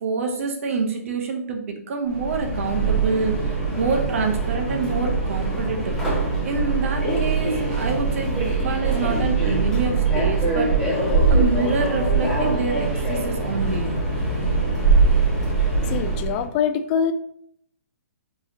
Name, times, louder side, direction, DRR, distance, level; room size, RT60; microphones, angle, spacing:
voice 1, 0.0-5.9 6.4-10.9 11.3-14.0, right 4 dB, 60° right, 3 dB, 0.8 m, -26 dB
Subway metro underground, 2.1-16.4, right 3 dB, ahead, 1.4 m, -22 dB
voice 2, 15.9-17.1, left 8 dB, 30° left, 10 dB, 0.4 m, -24 dB
4.6 x 2.9 x 2.9 m, 0.68 s
hypercardioid pair, 135°, 8 cm